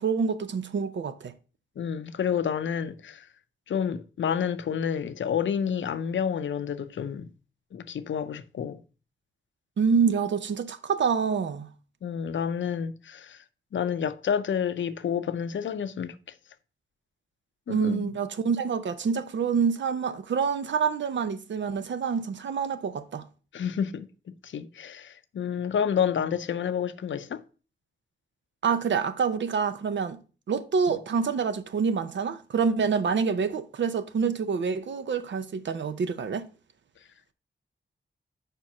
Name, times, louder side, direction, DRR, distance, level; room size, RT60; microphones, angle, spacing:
voice 1, 0.0-1.3 9.8-11.7 17.7-23.2 28.6-30.2 30.5-36.5, right 6 dB, 75° right, 0.6 m, -27 dB
voice 2, 1.8-3.2 3.7-7.3 7.7-8.8 12.0-13.4 13.7-16.2 17.7-18.1 23.5-27.4, left 8 dB, 85° left, 0.5 m, -29 dB
5.1 x 4.4 x 5.8 m
wide cardioid pair, 90°, 19 cm